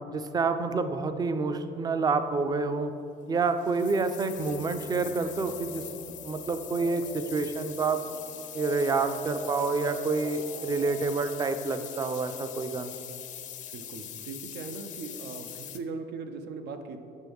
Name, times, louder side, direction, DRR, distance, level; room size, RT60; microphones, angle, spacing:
voice 1, 0.1-2.9 3.3-8.0 8.5-12.9, right 4 dB, 25° right, 9 dB, 0.4 m, -28 dB
sound 1, 3.4-15.8, left 10 dB, 50° left, 0.4 m, -43 dB
sound 2, 4.3-13.6, right 2 dB, 45° right, 1.3 m, -45 dB
voice 2, 13.7-17.0, right 4 dB, 80° right, 7 dB, 0.5 m, -39 dB
6.2 x 6.1 x 3.4 m, 2.7 s
cardioid pair, 110°, 17 cm